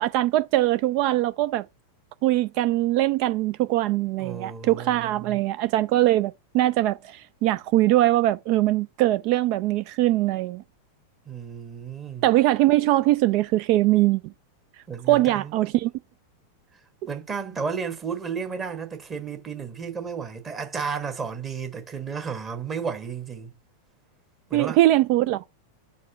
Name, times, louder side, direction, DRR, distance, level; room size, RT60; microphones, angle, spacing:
voice 1, 0.0-1.7 2.2-10.6 12.2-14.3 15.1-15.9 24.5-25.4, right 15 dB, 45° right, 0.3 m, -22 dB
voice 2, 4.2-5.4 11.3-12.3 14.9-15.5 17.1-23.5 24.5-24.8, right 6 dB, 20° right, 1.3 m, -33 dB
4.4 x 4.2 x 5.2 m
figure-of-eight pair, 90°, 0 cm